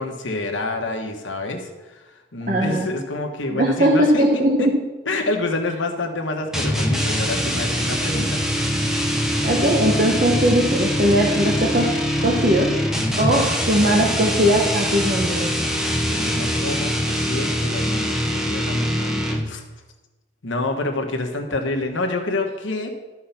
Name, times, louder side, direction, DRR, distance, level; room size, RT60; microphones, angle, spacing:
voice 1, 0.0-2.0 2.3-4.7 5.1-8.4 13.1-13.5 15.7-19.6 20.4-22.9, left 2 dB, 80° left, 3 dB, 1.3 m, -28 dB
voice 2, 2.5-2.9 3.5-4.7 9.4-11.9 12.2-12.7 13.2-15.5, right 1 dB, 45° right, -1 dB, 1.1 m, -19 dB
sound 1, 6.5-19.6, equal, 5° right, 0.9 m, -23 dB
13.0 x 4.8 x 5.8 m, 1.1 s
head